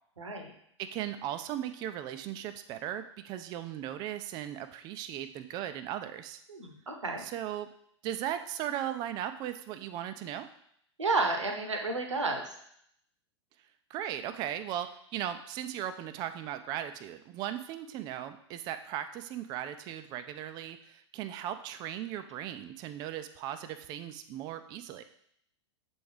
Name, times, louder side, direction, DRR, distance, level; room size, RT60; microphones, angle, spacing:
voice 1, 0.2-0.5 6.5-7.2 11.0-12.6, right 3 dB, 75° right, 4 dB, 1.0 m, -31 dB
voice 2, 0.8-6.4 7.2-7.7 8.0-10.5 13.9-25.0, right 11 dB, 25° right, 10 dB, 0.3 m, -37 dB
6.9 x 4.5 x 3.3 m, 0.70 s
figure-of-eight pair, 95°, 15 cm